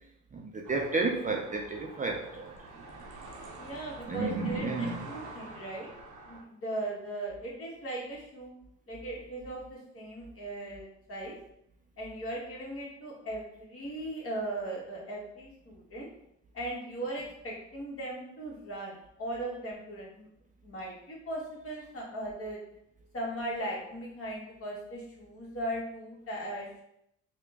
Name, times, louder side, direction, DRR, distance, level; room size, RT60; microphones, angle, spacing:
voice 1, 0.3-2.5 4.1-5.0, right 3 dB, 25° right, 0.4 m, -31 dB
sound 1, 0.6-6.4, right 2 dB, 90° right, 0.7 m, -47 dB
voice 2, 3.6-5.9 6.2-8.5 8.9-11.3 12.0-16.1 16.5-20.3 20.6-22.6 23.1-26.8, right 1 dB, 50° left, 1.5 m, -38 dB
3.6 x 2.2 x 3.4 m
cardioid pair, 90°, 30 cm